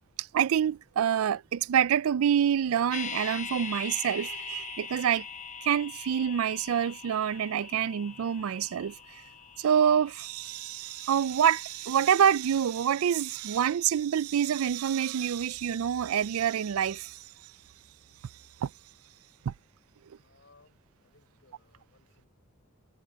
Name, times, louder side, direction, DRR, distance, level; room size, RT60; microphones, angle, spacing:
voice 1, 0.2-5.3 5.6-8.9 9.6-17.2 18.6-18.7 19.5-19.6, right 8 dB, 85° right, 0.4 m, -27 dB
sound 1, 2.9-12.9 13.2-13.3, left 6 dB, 35° left, 1.1 m, -43 dB
voice 2, 20.2-22.3, left 3 dB, 60° left, 6.8 m, -63 dB
head